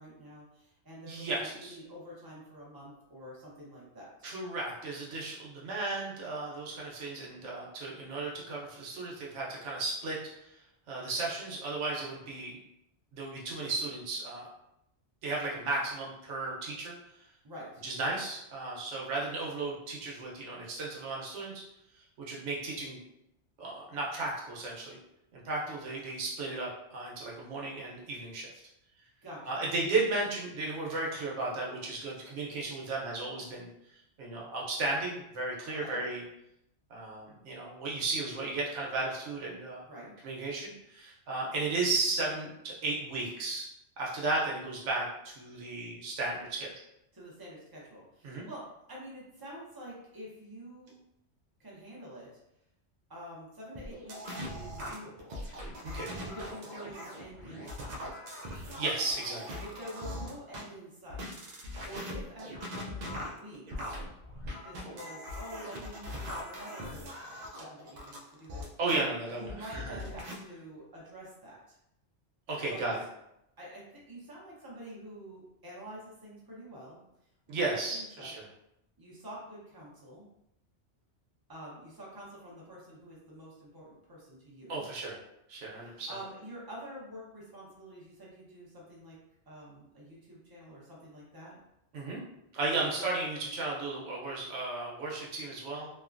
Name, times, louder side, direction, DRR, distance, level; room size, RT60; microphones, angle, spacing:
voice 1, 0.0-4.1 17.4-17.8 29.2-29.4 35.7-36.0 39.9-40.1 47.1-50.9 51.6-52.3 53.1-54.2 54.5-55.4 56.3-58.2 59.6-61.5 61.8-63.8 64.4-67.0 67.6-68.7 69.3-71.8 72.7-72.9 73.6-77.0 77.5-78.4 79.0-80.3 81.5-84.8 85.7-89.2 89.5-91.6 93.0-93.1, equal, 20° right, -5 dB, 0.7 m, -47 dB
voice 2, 1.1-1.8 4.2-10.5 10.9-12.6 13.1-14.5 15.2-17.0 17.8-21.6 22.3-23.0 23.6-25.0 25.3-28.5 29.5-33.7 34.2-36.2 36.9-39.8 40.2-43.7 44.0-46.7 48.2-48.5 55.8-56.1 58.5-59.6 68.8-70.0 72.5-72.9 77.5-78.5 84.7-85.2 85.5-86.1 91.9-92.2 92.5-95.9, right 3 dB, 80° right, -3 dB, 1.1 m, -34 dB
sound 1, 53.7-60.6 61.1-69.0 69.5-70.4, left 1 dB, 60° right, 0.4 m, -41 dB
3.1 x 2.2 x 2.4 m, 0.82 s
omnidirectional pair, 1.2 m